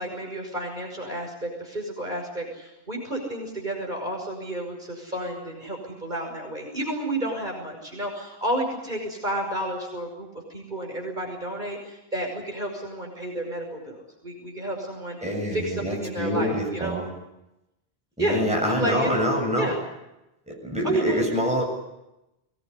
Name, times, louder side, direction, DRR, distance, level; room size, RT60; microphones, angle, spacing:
voice 1, 0.0-17.0 18.2-19.1 19.6-19.8 20.8-21.5, right 1 dB, 45° right, 1 dB, 6.0 m, -31 dB
voice 2, 15.2-17.1 18.2-19.7 20.5-21.6, equal, 5° right, -1 dB, 7.8 m, -26 dB
23.0 x 20.0 x 9.9 m, 0.93 s
omnidirectional pair, 1.1 m